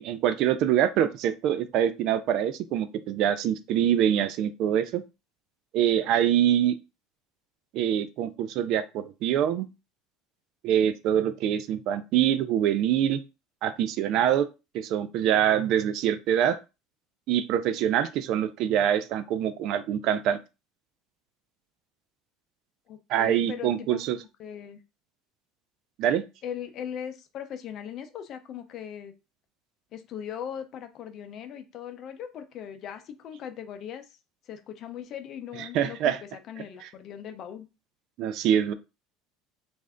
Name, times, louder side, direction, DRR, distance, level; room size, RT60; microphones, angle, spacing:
voice 1, 0.0-5.0 5.7-6.7 7.7-9.7 10.6-13.2 13.6-14.5 14.7-16.6 17.3-20.4 23.1-24.2 26.0-26.2 35.6-36.2 38.2-38.7, right 10 dB, 55° right, 12 dB, 0.4 m, -25 dB
voice 2, 22.9-24.8 26.4-29.1 29.9-34.2 34.5-36.2 36.5-37.7, left 9 dB, 45° left, 8 dB, 0.6 m, -39 dB
3.2 x 2.6 x 3.6 m, 0.28 s
cardioid pair, 135°, 0 cm